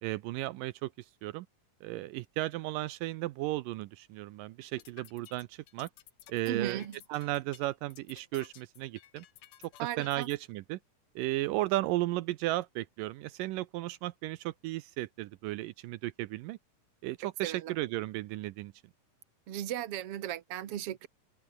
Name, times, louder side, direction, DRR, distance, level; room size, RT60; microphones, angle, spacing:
voice 1, 0.0-0.9 1.2-1.5 1.8-5.9 6.3-6.8 7.1-9.3 10.0-10.8 11.2-16.6 17.0-18.7, right 17 dB, 80° right, 2.3 m, -34 dB
sound 1, 4.6-10.4, left 12 dB, 75° left, 2.9 m, -55 dB
voice 2, 6.5-7.0 9.8-10.3 17.2-17.7 19.5-21.1, right 11 dB, 50° right, 2.1 m, -36 dB
open air
omnidirectional pair, 3.9 m